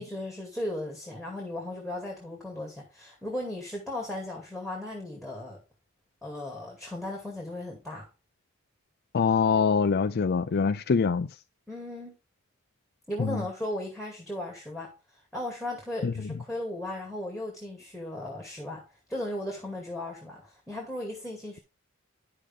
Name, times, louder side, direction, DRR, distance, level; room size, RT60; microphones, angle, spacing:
voice 1, 0.0-5.6 6.2-8.1 11.7-12.1 13.1-21.6, left 1 dB, ahead, 2.3 m, -36 dB
voice 2, 9.1-11.3 13.2-13.4 16.0-16.1, left 5 dB, 50° left, 0.4 m, -24 dB
10.0 x 6.5 x 3.6 m
head